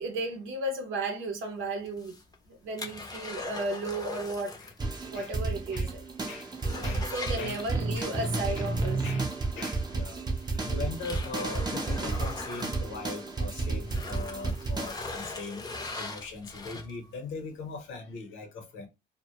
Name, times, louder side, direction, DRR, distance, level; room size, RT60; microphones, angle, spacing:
voice 1, 0.0-2.2 2.5-4.5 5.1-6.0 7.1-9.0, right 2 dB, 80° right, 0.7 m, -34 dB
sound 1, 1.9-4.8 5.1-5.2 5.7-5.8 6.1-8.2 9.6-9.7 10.3-13.5 13.8-17.1 17.7-17.8, left 3 dB, 20° left, 0.6 m, -40 dB
sound 2, 4.8-14.9, right 3 dB, 20° right, 0.6 m, -32 dB
voice 2, 6.3-7.6 7.9-8.1 8.5-8.6 9.0-9.2 9.5-10.2 10.5-18.9, left 4 dB, 80° left, 0.9 m, -40 dB
2.1 x 2.1 x 2.9 m
cardioid pair, 90°, 20 cm